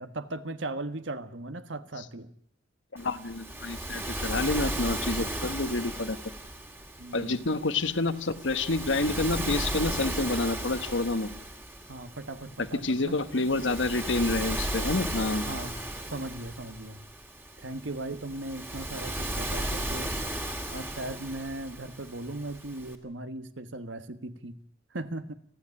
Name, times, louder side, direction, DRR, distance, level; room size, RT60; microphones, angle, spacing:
voice 1, 0.0-2.3 7.0-7.6 11.9-13.1 15.4-15.8 16.1-17.0 17.6-20.1 20.7-24.6 24.9-25.3, right 2 dB, 85° right, 10 dB, 1.5 m, -38 dB
voice 2, 2.9-6.2 7.1-11.3 12.8-15.4, left 2 dB, 85° left, 10 dB, 1.3 m, -28 dB
Waves surf, 3.0-23.0, right 1 dB, 10° right, 2.2 m, -35 dB
29.5 x 9.8 x 9.9 m, 0.65 s
head